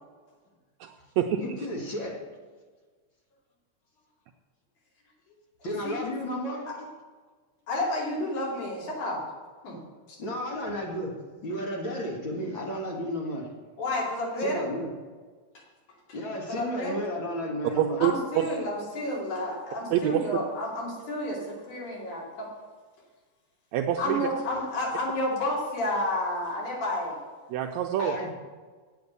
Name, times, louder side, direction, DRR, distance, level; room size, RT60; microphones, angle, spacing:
voice 1, 0.8-1.4 17.8-18.5 19.9-20.2 23.7-24.3 27.5-28.2, right 11 dB, 80° right, 4 dB, 1.7 m, -26 dB
voice 2, 1.4-2.3 5.6-6.9 10.2-11.1 11.4-13.5 14.4-14.9 16.1-18.0 28.0-28.3, equal, 45° left, -1 dB, 2.1 m, -33 dB
voice 3, 7.7-9.2 9.6-9.8 10.1-10.2 13.8-14.6 16.5-17.0 18.0-22.5 24.0-27.2, left 1 dB, 75° left, -4 dB, 4.2 m, -30 dB
8.7 x 8.2 x 6.7 m, 1.4 s
omnidirectional pair, 3.5 m